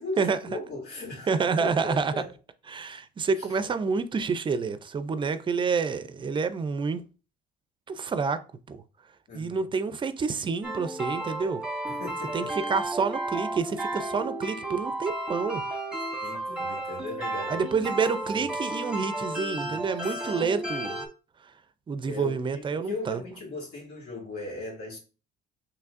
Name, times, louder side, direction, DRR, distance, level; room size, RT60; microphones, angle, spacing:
voice 1, 0.0-2.3 3.4-3.6 9.3-9.6 11.9-12.5 16.0-17.9 18.2-18.5 19.6-19.8 22.0-25.0, left 2 dB, 70° left, 2.2 m, -38 dB
voice 2, 1.3-2.1 2.7-7.0 7.9-8.4 8.7-8.8 9.3-11.6 12.3-15.6 17.5-21.0 21.9-23.2, right 5 dB, 30° right, 0.4 m, -28 dB
sound 1, 10.6-21.1, right 1 dB, 5° right, 1.0 m, -33 dB
5.8 x 3.1 x 2.5 m
cardioid pair, 110°, 17 cm